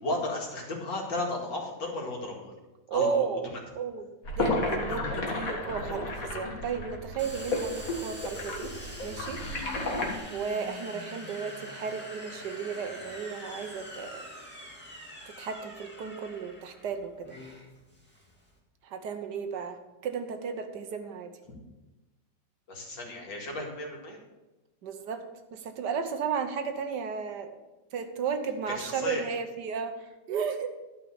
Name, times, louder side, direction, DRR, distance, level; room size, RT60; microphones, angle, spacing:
voice 1, 0.0-2.5 2.9-3.1 22.7-24.2 28.7-29.2, left 2 dB, 80° left, -1 dB, 2.7 m, -34 dB
voice 2, 2.9-3.5 3.7-4.0 4.4-8.7 9.0-9.4 10.3-14.2 15.4-17.4 18.8-21.3 24.8-25.2 25.5-27.5 27.9-30.7, right 6 dB, 70° right, 7 dB, 1.4 m, -34 dB
sound 1, 4.2-10.2, left 2 dB, 50° left, 2.1 m, -32 dB
Domestic sounds home sounds, 7.2-18.6, equal, 5° left, 2.2 m, -44 dB
12.0 x 5.4 x 7.2 m, 1.1 s
omnidirectional pair, 2.0 m